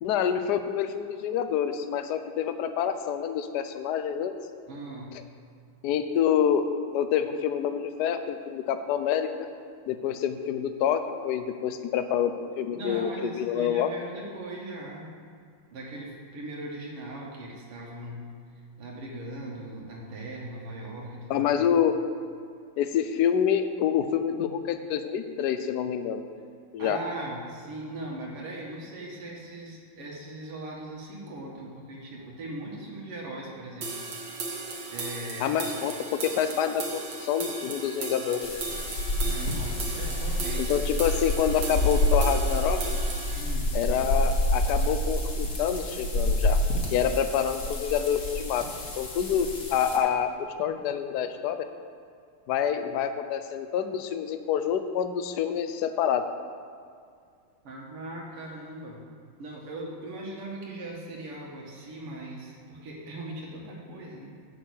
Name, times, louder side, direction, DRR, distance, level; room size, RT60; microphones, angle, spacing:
voice 1, 0.0-4.3 5.8-9.5 9.9-13.9 21.3-22.0 22.8-26.2 26.7-27.0 35.4-38.5 40.6-42.8 43.7-46.6 46.9-48.7 49.0-51.7 52.5-56.3, left 8 dB, 70° left, 9 dB, 1.0 m, -27 dB
voice 2, 4.7-5.2 12.7-15.1 15.7-18.3 18.8-21.5 26.8-34.1 34.9-35.5 39.2-40.8 43.3-43.8 57.6-59.1 59.4-64.3, right 1 dB, 85° right, -3 dB, 2.6 m, -39 dB
sound 1, 33.8-43.4, right 3 dB, 55° right, 1.8 m, -36 dB
sound 2, 38.4-50.0, left 1 dB, 45° left, 1.7 m, -28 dB
8.6 x 6.3 x 8.4 m, 2.2 s
omnidirectional pair, 2.4 m